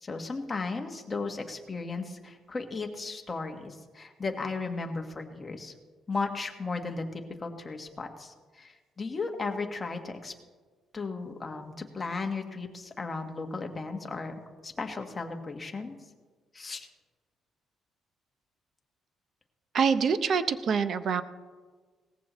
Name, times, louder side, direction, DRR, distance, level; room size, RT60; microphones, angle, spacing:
voice 1, 0.0-5.7 6.1-10.3 10.9-14.3 14.6-15.9 16.5-16.9, left 3 dB, 25° left, 3 dB, 1.4 m, -35 dB
voice 2, 19.7-21.2, right 6 dB, 50° right, 12 dB, 0.7 m, -25 dB
18.5 x 14.5 x 3.1 m, 1.4 s
cardioid pair, 125°, 0 cm